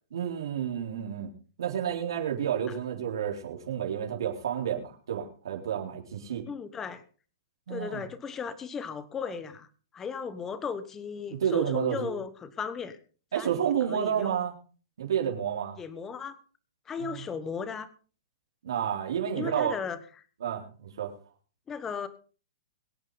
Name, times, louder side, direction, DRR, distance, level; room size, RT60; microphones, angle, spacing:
voice 1, 0.1-1.3 1.6-6.4 7.7-8.0 11.3-12.1 13.3-14.5 15.0-15.8 17.0-17.2 18.6-19.7 20.4-21.1, right 9 dB, 75° right, -1 dB, 3.9 m, -30 dB
voice 2, 6.5-7.0 7.7-9.7 9.9-13.0 13.3-14.3 15.8-16.4 16.9-17.9 19.4-20.0 21.7-22.1, left 6 dB, 15° left, 13 dB, 1.3 m, -36 dB
23.0 x 9.0 x 4.0 m, 0.38 s
hypercardioid pair, 155°, 2 cm